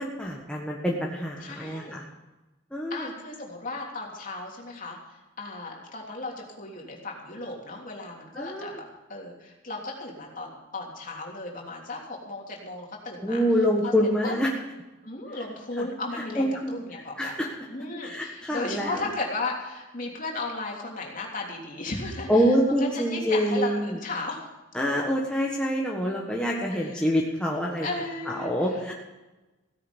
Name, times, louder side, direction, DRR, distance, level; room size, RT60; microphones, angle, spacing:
voice 1, 0.0-2.0 2.7-3.1 8.3-8.8 13.2-14.5 16.4-16.8 17.2-17.5 18.0-19.0 22.3-24.0 24.7-27.9 28.3-28.9, equal, 5° left, -3 dB, 1.5 m, -26 dB
voice 2, 1.4-2.0 2.9-5.0 5.4-8.8 9.1-13.4 13.8-13.9 14.2-14.3 15.0-17.3 17.7-24.5 26.7-27.0 27.8-28.9, left 2 dB, 40° left, -1 dB, 3.3 m, -35 dB
16.5 x 11.0 x 5.3 m, 1.1 s
head